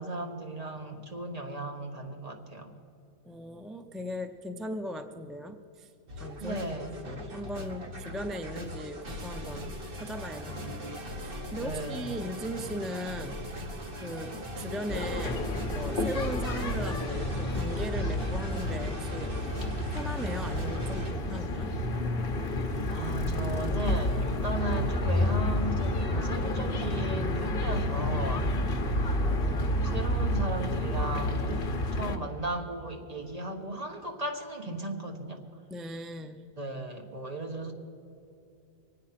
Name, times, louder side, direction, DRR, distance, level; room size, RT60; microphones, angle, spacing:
voice 1, 0.0-2.7 6.4-6.9 11.6-12.2 22.9-28.5 29.8-31.5 31.9-35.4 36.5-37.7, right 1 dB, 40° right, 3 dB, 1.5 m, -36 dB
voice 2, 3.2-5.9 6.2-6.6 7.0-10.9 11.2-13.5 14.0-14.3 14.6-19.5 19.9-21.7 29.2-29.9 35.7-36.4, equal, ahead, 7 dB, 0.4 m, -38 dB
sound 1, 6.1-21.1, equal, 60° right, 1.6 m, -40 dB
sound 2, 14.9-32.2, left 1 dB, 60° left, 1.2 m, -30 dB
23.5 x 9.2 x 5.8 m, 2.6 s
omnidirectional pair, 1.1 m